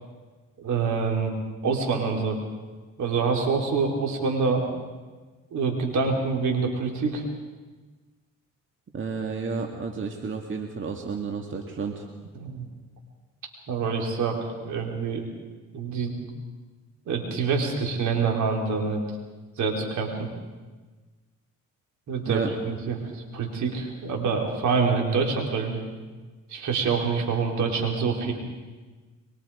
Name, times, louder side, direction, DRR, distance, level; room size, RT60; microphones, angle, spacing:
voice 1, 0.6-1.3 1.6-2.4 3.0-4.6 5.5-7.2 12.3-12.7 13.7-14.4 14.6-15.2 15.7-16.2 17.1-19.0 19.6-20.3 22.1-25.8 26.5-28.3, right 5 dB, 70° right, 1 dB, 4.3 m, -26 dB
voice 2, 8.9-12.0 22.3-22.5, right 5 dB, 40° right, 2 dB, 2.1 m, -31 dB
23.5 x 23.0 x 5.1 m, 1.3 s
cardioid pair, 90°, 30 cm